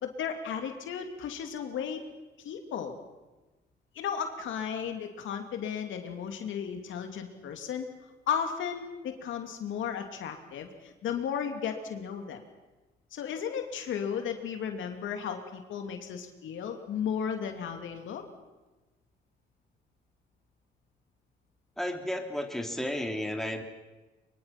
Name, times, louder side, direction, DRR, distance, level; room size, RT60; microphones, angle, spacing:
voice 1, 0.0-2.0 2.4-3.0 3.9-7.9 8.3-12.4 13.1-18.2, left 7 dB, 75° left, 5 dB, 2.6 m, -34 dB
voice 2, 21.8-23.6, left 1 dB, ahead, 3 dB, 3.0 m, -33 dB
23.5 x 23.0 x 5.9 m, 1.2 s
cardioid pair, 90°, 20 cm